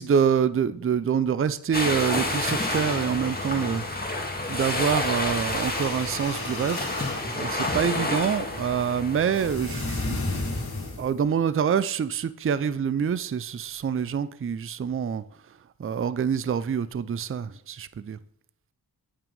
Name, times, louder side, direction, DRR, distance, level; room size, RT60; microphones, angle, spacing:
voice 1, 0.0-4.2 4.5-6.8 7.4-10.2 11.0-15.2 15.8-18.2, right 7 dB, 35° right, 0.4 m, -26 dB
sound 1, 1.7-9.5, left 2 dB, 25° left, 1.8 m, -29 dB
sound 2, 5.4-7.3 9.3-11.2, left 2 dB, 70° left, 2.2 m, -32 dB
8.9 x 5.8 x 5.3 m
wide cardioid pair, 75°, 39 cm